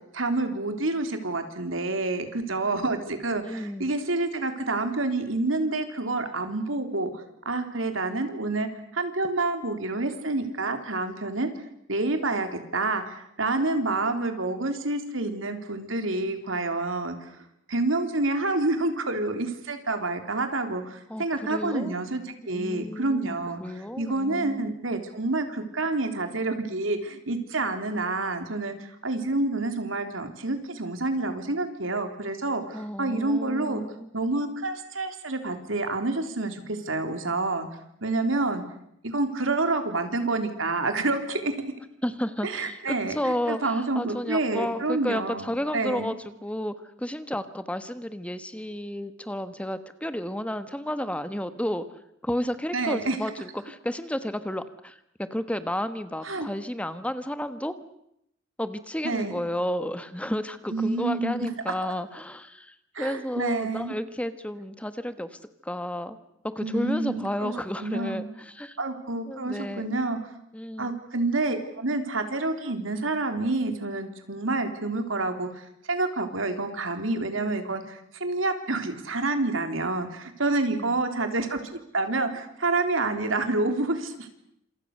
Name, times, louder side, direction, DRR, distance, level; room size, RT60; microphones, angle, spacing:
voice 1, 0.0-11.5 11.9-17.3 17.7-22.2 22.5-23.6 24.0-33.8 34.1-37.7 38.0-38.6 39.0-41.5 42.4-46.1 52.7-53.2 56.2-56.5 59.0-59.4 60.7-61.5 63.0-63.9 66.6-67.5 67.8-68.3 68.8-70.2 70.8-81.6 81.9-84.3, right 2 dB, 90° right, 6 dB, 3.6 m, -28 dB
voice 2, 3.4-3.9 21.1-21.9 22.5-24.7 32.7-34.1 42.0-57.7 58.6-66.2 66.4-68.8 69.3-70.0 70.5-71.0 80.7-81.0, left 1 dB, 5° left, 11 dB, 1.3 m, -32 dB
28.5 x 27.0 x 6.7 m, 0.76 s
head